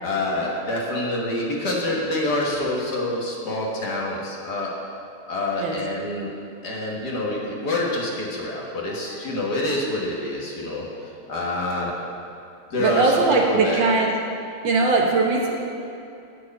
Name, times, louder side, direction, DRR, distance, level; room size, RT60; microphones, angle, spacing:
voice 1, 0.0-4.7 5.3-6.3 6.6-11.9 12.7-13.8, left 1 dB, 50° left, -3 dB, 1.9 m, -27 dB
voice 2, 12.8-14.2 14.6-15.6, right 3 dB, 65° right, 0 dB, 1.8 m, -20 dB
12.0 x 4.7 x 8.5 m, 2.6 s
omnidirectional pair, 2.3 m